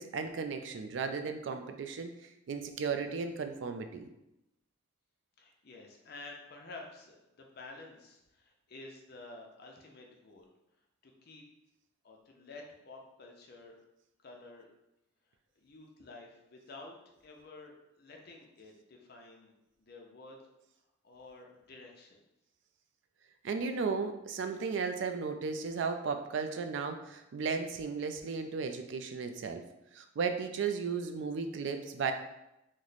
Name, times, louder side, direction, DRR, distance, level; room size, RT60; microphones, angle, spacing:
voice 1, 0.0-2.1 2.5-4.1 23.4-29.6 29.9-32.1, right 5 dB, 70° right, 7 dB, 0.3 m, -35 dB
voice 2, 5.4-10.5 11.0-11.4 12.0-13.8 14.2-14.7 15.6-16.9 17.2-19.5 19.8-20.4 21.0-22.2, left 3 dB, 55° left, 0 dB, 0.6 m, -51 dB
3.1 x 2.1 x 3.9 m, 0.89 s
head